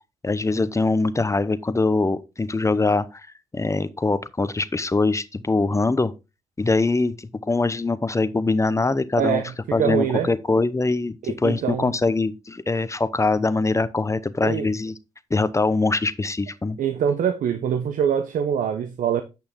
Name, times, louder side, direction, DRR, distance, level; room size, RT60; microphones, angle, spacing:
voice 1, 0.2-3.2 3.5-6.1 6.6-9.4 9.7-14.9 15.3-16.8, left 3 dB, 20° left, 0.8 m, -23 dB
voice 2, 9.2-10.3 11.2-11.9 14.4-14.7 16.8-19.2, right 8 dB, 85° right, 0.8 m, -24 dB
8.7 x 5.6 x 3.7 m
cardioid pair, 65°, 13 cm